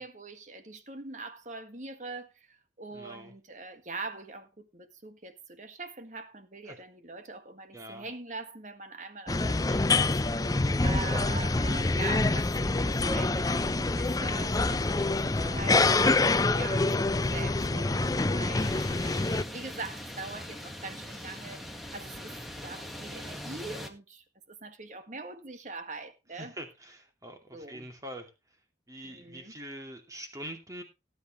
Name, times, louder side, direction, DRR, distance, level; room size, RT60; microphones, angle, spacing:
voice 1, 0.0-26.5 27.5-27.9 29.0-29.6, right 3 dB, 45° right, 1.7 m, -43 dB
voice 2, 2.9-3.3 6.7-6.8 7.7-8.1 21.1-21.3 22.3-22.7 26.3-28.3 28.9-30.8, right 1 dB, 20° right, 2.5 m, -44 dB
sound 1, 9.3-19.4, left 3 dB, 20° left, 0.5 m, -26 dB
sound 2, 18.6-23.9, left 1 dB, ahead, 1.7 m, -42 dB
18.0 x 8.8 x 3.1 m
head